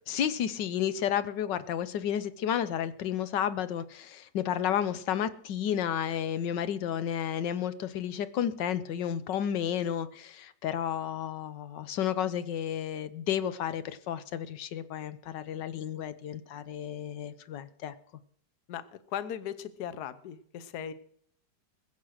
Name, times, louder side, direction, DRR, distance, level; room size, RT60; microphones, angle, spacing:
voice 1, 0.1-17.9, left 9 dB, 85° left, 1.5 m, -32 dB
voice 2, 19.1-20.9, left 9 dB, 70° left, 1.3 m, -37 dB
21.0 x 7.6 x 6.5 m
omnidirectional pair, 1.9 m